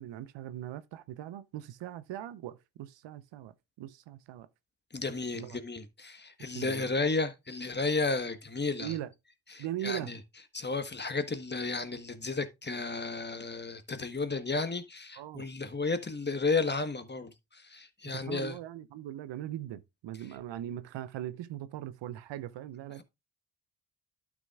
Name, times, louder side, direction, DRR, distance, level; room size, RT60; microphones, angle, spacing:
voice 1, 0.0-4.5 5.3-5.6 6.5-6.9 8.8-9.1 9.6-10.1 15.2-15.5 18.1-23.0, right 12 dB, 65° right, 0.8 m, -40 dB
voice 2, 4.9-8.9 9.5-10.2 10.5-18.6, left 3 dB, 20° left, 1.4 m, -33 dB
12.0 x 6.0 x 2.4 m
hypercardioid pair, 45°, 48 cm